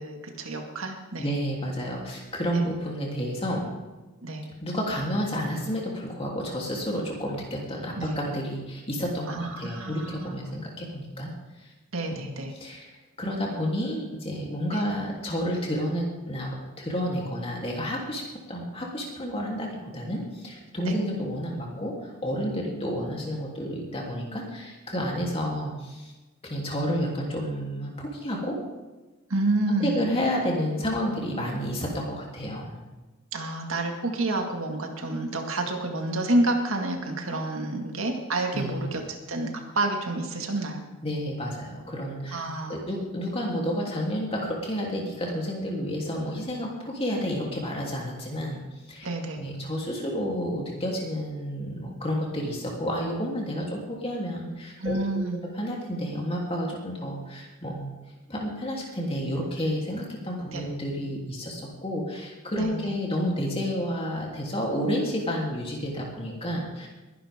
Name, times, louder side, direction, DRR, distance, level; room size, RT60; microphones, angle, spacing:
voice 1, 0.0-1.3 2.5-2.7 4.2-4.5 8.0-8.2 9.3-10.4 11.9-12.5 14.7-14.8 20.8-21.0 29.3-30.0 33.3-39.0 39.3-40.8 42.3-42.8 49.0-49.4 54.8-55.4 60.5-60.7 62.6-62.9, right 2 dB, 70° right, 3 dB, 2.0 m, -29 dB
voice 2, 1.2-3.7 4.6-11.3 11.6-11.7 12.1-12.3 12.5-12.9 13.2-18.2 18.5-26.1 26.4-28.6 29.8-32.8 38.5-38.8 41.0-49.1 49.4-55.2 55.6-57.9 58.3-66.9, equal, 25° left, -2 dB, 3.2 m, -30 dB
21.0 x 11.5 x 3.7 m, 1.2 s
head